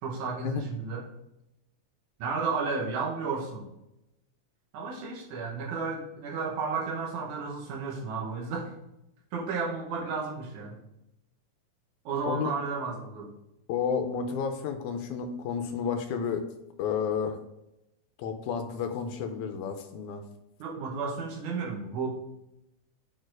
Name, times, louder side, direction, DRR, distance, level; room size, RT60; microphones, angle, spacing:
voice 1, 0.0-1.1 2.2-3.7 4.7-8.7 9.3-10.8 12.1-13.4 20.6-22.1, right 4 dB, 85° right, -1 dB, 2.5 m, -33 dB
voice 2, 13.7-16.4 16.8-17.4 18.2-20.2, left 6 dB, 85° left, 5 dB, 2.0 m, -31 dB
6.6 x 4.4 x 4.7 m, 0.89 s
omnidirectional pair, 3.4 m